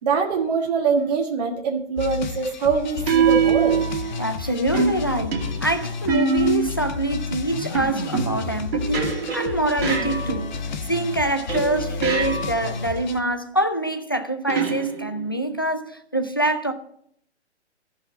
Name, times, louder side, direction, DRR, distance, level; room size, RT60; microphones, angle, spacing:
voice 1, 0.0-3.8, right 5 dB, 35° right, 1.5 m, -23 dB
sound 1, 1.0-1.3 3.1-4.3 4.7-6.9 7.7-10.7 11.5-12.8 14.5-15.4, right 6 dB, 55° right, 2.5 m, -24 dB
sound 2, 2.0-13.2, left 5 dB, 40° left, 0.9 m, -32 dB
voice 2, 4.2-10.6 10.9-16.7, right 1 dB, 20° left, 0.4 m, -25 dB
14.5 x 5.7 x 7.7 m
hypercardioid pair, 165°, 35 cm